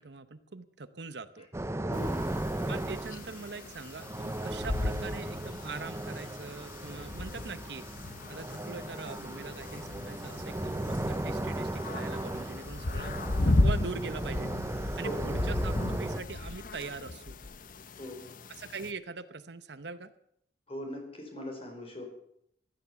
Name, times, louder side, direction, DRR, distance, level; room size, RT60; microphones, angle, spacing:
voice 1, 0.0-1.5 2.7-7.9 8.3-14.5 15.0-17.3 18.6-20.1, right 4 dB, 70° right, 12 dB, 0.9 m, -42 dB
sound 1, 1.5-16.2, right 1 dB, 15° right, 0.5 m, -36 dB
sound 2, 1.9-18.9, left 2 dB, 50° left, 0.8 m, -35 dB
voice 2, 1.9-2.3 15.0-15.3 18.0-18.3 20.7-22.0, left 1 dB, 35° left, 3 dB, 4.7 m, -40 dB
15.5 x 13.0 x 7.0 m, 0.74 s
head